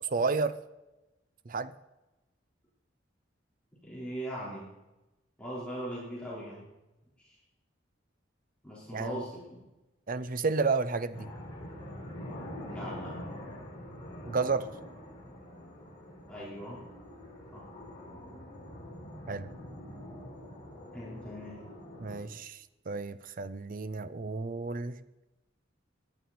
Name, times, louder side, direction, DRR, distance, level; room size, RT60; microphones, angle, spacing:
voice 1, 0.0-0.6 1.5-1.7 8.9-9.2 10.1-11.3 14.2-14.7 19.3-19.5 22.0-25.0, right 4 dB, 45° right, 14 dB, 0.6 m, -31 dB
voice 2, 3.8-4.7 5.4-6.7 7.2-7.4 8.6-9.6 12.7-13.1 16.3-16.8 17.5-17.6 20.9-21.6, equal, 5° left, -9 dB, 4.3 m, -40 dB
sound 1, 11.1-22.2, left 1 dB, 25° left, 5.3 m, -45 dB
18.5 x 11.0 x 4.3 m, 1.0 s
head